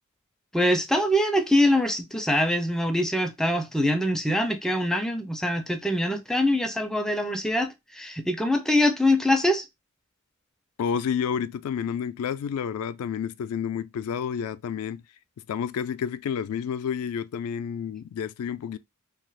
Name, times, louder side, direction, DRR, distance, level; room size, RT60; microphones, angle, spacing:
voice 1, 0.5-9.7, left 1 dB, ahead, 0.4 m, -24 dB
voice 2, 10.8-15.0 15.5-18.8, left 7 dB, 80° left, 0.3 m, -30 dB
2.7 x 2.4 x 3.0 m
head